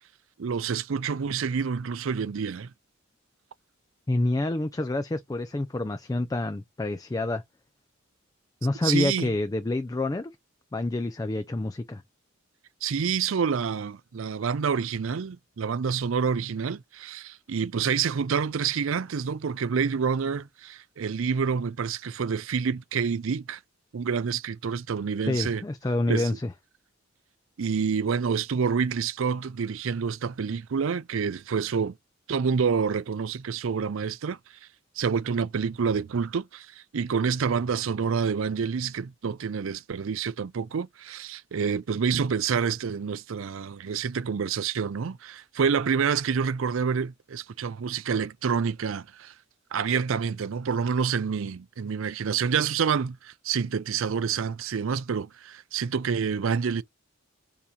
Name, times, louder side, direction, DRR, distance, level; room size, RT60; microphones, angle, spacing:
voice 1, 0.4-2.7 8.8-9.3 12.8-23.6 23.9-25.6 26.1-26.3 27.6-32.0 32.3-34.4 35.0-49.3 49.7-56.8, right 6 dB, 65° right, 0.4 m, -28 dB
voice 2, 4.1-7.4 8.6-10.3 10.7-12.0 25.3-26.5, left 2 dB, 15° left, 0.4 m, -28 dB
7.1 x 2.9 x 5.1 m
head